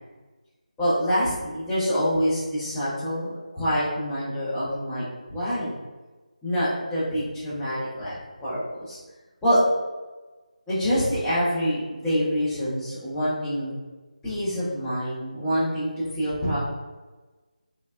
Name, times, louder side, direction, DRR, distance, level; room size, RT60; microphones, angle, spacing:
voice 1, 0.8-5.7 6.4-8.1 8.4-9.0 9.4-9.6 10.7-13.7 14.2-16.6, equal, 5° left, -12 dB, 0.6 m, -26 dB
3.2 x 2.0 x 2.3 m, 1.2 s
figure-of-eight pair, 160°, 4 cm